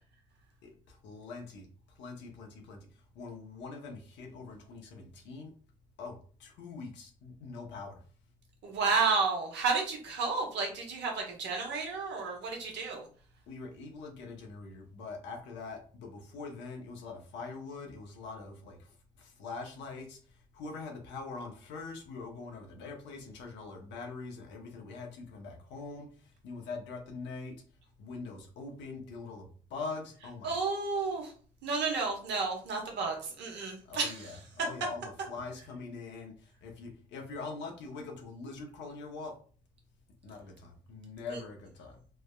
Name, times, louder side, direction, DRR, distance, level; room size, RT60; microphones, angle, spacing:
voice 1, 1.0-1.7 2.0-2.8 3.2-5.5 6.0-8.0 13.5-18.8 19.2-20.2 20.5-26.1 26.4-27.5 28.0-30.5 33.9-36.3 36.6-39.3 40.2-42.0, left 4 dB, 75° left, 2 dB, 0.8 m, -43 dB
voice 2, 8.6-13.0 30.4-31.3 31.6-34.3 41.3-41.4, right 4 dB, 70° right, 1 dB, 1.0 m, -31 dB
3.3 x 2.1 x 2.2 m, 0.42 s
hypercardioid pair, 55°, 19 cm